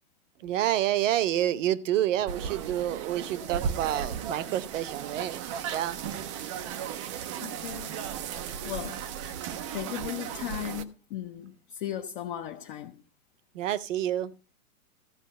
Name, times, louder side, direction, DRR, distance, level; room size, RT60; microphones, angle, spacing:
voice 1, 0.4-5.4 5.7-6.0 13.5-14.3, right 12 dB, 55° right, 0.9 m, -28 dB
sound 1, 2.3-10.8, right 8 dB, 20° right, 0.4 m, -35 dB
voice 2, 7.4-8.0 8.3-9.0 9.7-13.0, left 11 dB, 35° left, 0.7 m, -37 dB
14.0 x 5.1 x 6.4 m
hypercardioid pair, 125°, 46 cm